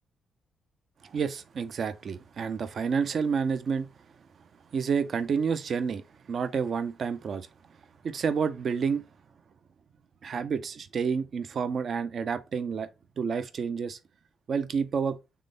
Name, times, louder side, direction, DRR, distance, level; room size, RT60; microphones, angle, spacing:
voice 1, 1.0-3.9 4.7-7.5 8.0-9.1 10.2-12.9 13.2-14.0 14.5-15.2, right 6 dB, 60° right, 0.5 m, -29 dB
3.7 x 3.3 x 3.9 m
cardioid pair, 75°, 0 cm